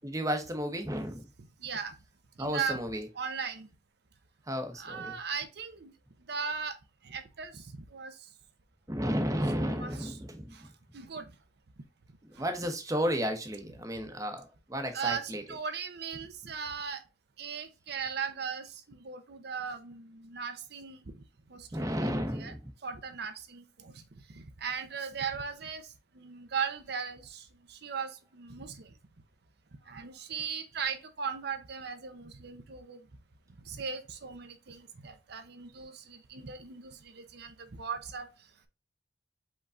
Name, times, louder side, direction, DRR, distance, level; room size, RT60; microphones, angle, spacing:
voice 1, 0.0-1.2 2.4-3.1 4.5-5.2 8.9-10.5 12.3-15.6 21.7-22.7, equal, 20° right, 1.0 m, -33 dB
voice 2, 1.6-1.9 2.4-2.8 3.1-3.7 4.8-5.9 6.3-6.7 7.0-7.6 7.9-8.1 9.6-10.2 10.5-10.6 10.9-11.3 14.9-17.0 17.4-21.0 21.5-22.5 22.8-23.9 24.3-25.9 26.1-27.4 27.7-28.8 29.9-33.0 33.7-38.3, right 6 dB, 60° right, 0.7 m, -38 dB
5.1 x 3.7 x 2.5 m
head